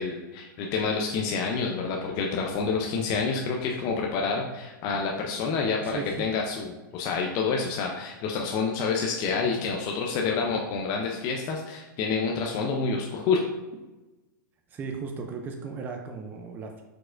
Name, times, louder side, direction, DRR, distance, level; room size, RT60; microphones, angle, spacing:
voice 1, 0.0-13.4, left 5 dB, 35° left, 0 dB, 0.5 m, -28 dB
voice 2, 5.8-6.3 14.7-16.8, right 4 dB, 15° right, 2 dB, 0.4 m, -36 dB
4.6 x 4.1 x 2.5 m, 1.1 s
hypercardioid pair, 140°, 11 cm